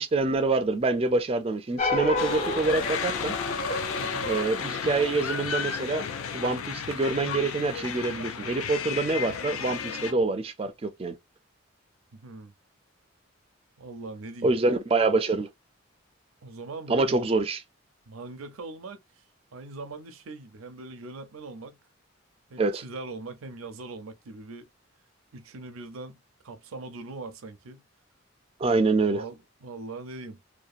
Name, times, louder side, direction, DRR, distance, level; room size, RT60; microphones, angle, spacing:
voice 1, 0.0-3.4 4.2-6.1 6.3-11.2 14.4-15.5 16.9-17.6 22.6-22.8 28.6-29.2, right 3 dB, 25° right, 0.3 m, -26 dB
sound 1, 1.8-6.4, left 2 dB, 35° left, 0.6 m, -31 dB
sound 2, 2.2-10.1, left 7 dB, 85° left, 0.5 m, -33 dB
voice 2, 4.0-4.3 12.1-12.5 13.8-14.5 16.4-17.3 18.1-19.0 19.5-21.8 22.5-24.7 25.3-26.2 26.4-27.8 29.1-30.4, right 3 dB, 85° right, 0.5 m, -41 dB
2.8 x 2.2 x 2.4 m
head